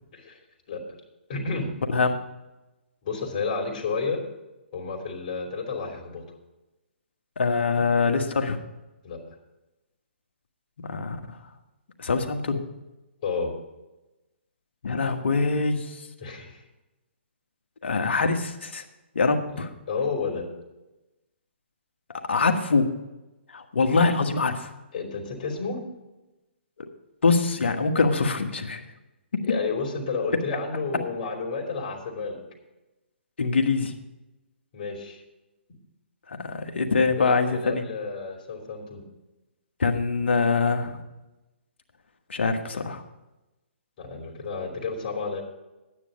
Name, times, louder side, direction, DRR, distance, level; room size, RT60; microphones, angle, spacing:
voice 1, 1.3-1.7 3.0-4.2 4.7-6.2 9.0-9.2 13.2-13.5 16.2-16.6 19.5-19.6 19.9-20.5 24.9-25.8 29.4-32.4 34.7-35.2 37.1-39.0 44.0-45.4, left 4 dB, 45° left, 1 dB, 2.9 m, -31 dB
voice 2, 7.4-8.6 10.8-11.4 12.0-12.6 14.8-16.1 17.8-18.8 19.1-19.7 22.3-22.9 23.5-24.7 27.2-28.8 29.3-29.5 33.4-33.9 36.3-37.8 39.8-41.0 42.3-43.0, left 4 dB, 75° left, 5 dB, 1.4 m, -24 dB
10.5 x 9.5 x 5.1 m, 1.0 s
hypercardioid pair, 145°, 6 cm